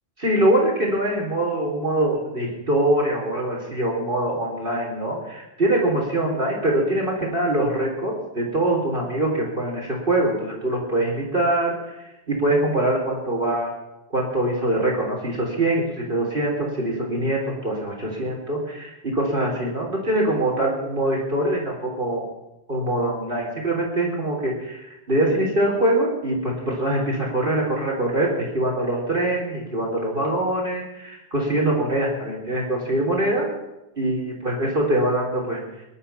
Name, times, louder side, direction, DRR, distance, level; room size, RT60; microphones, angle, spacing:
voice 1, 0.2-11.7 12.3-13.7 14.1-15.8 16.1-22.2 22.7-33.5 34.0-35.6, right 1 dB, 55° right, -2 dB, 4.0 m, -23 dB
21.0 x 11.0 x 5.7 m, 0.94 s
omnidirectional pair, 1.1 m